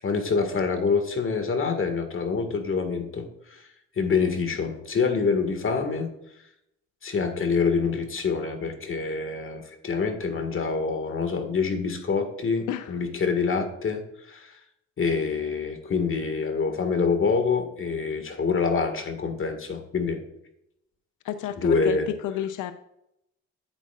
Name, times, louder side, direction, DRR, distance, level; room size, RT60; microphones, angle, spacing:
voice 1, 0.0-3.7 3.9-6.1 7.0-14.6 15.0-20.2 21.6-22.1, left 5 dB, 45° left, 6 dB, 1.8 m, -26 dB
voice 2, 21.2-22.7, left 11 dB, 80° left, 11 dB, 0.6 m, -31 dB
10.5 x 8.3 x 2.4 m, 0.79 s
cardioid pair, 90°, 30 cm